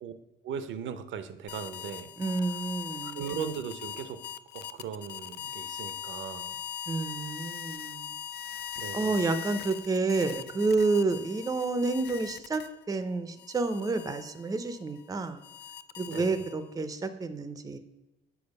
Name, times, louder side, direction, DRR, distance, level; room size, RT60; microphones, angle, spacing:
voice 1, 0.4-2.1 3.0-4.2 4.5-6.6 8.8-9.2 16.1-16.4, right 7 dB, 75° right, 10 dB, 0.7 m, -38 dB
sound 1, 1.5-12.9 13.4-16.7, left 9 dB, 55° left, 0.4 m, -41 dB
voice 2, 2.2-3.2 6.9-8.1 8.9-15.4 16.0-17.8, right 3 dB, 20° right, 11 dB, 0.5 m, -29 dB
7.0 x 4.6 x 5.3 m, 0.98 s
cardioid pair, 90°, 20 cm